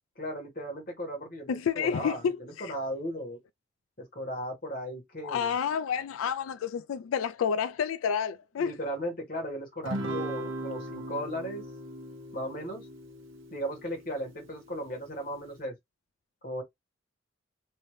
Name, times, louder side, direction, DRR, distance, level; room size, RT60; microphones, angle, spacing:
voice 1, 0.2-3.4 4.0-5.5 8.6-11.6 12.3-12.9 13.5-15.8 16.4-16.6, equal, 45° left, 1.5 m, -36 dB
voice 2, 1.5-2.7 5.2-8.7, left 7 dB, 90° left, 0.3 m, -30 dB
Guitar, 9.8-14.5, right 1 dB, 75° right, 1.0 m, -38 dB
3.4 x 2.7 x 3.2 m
head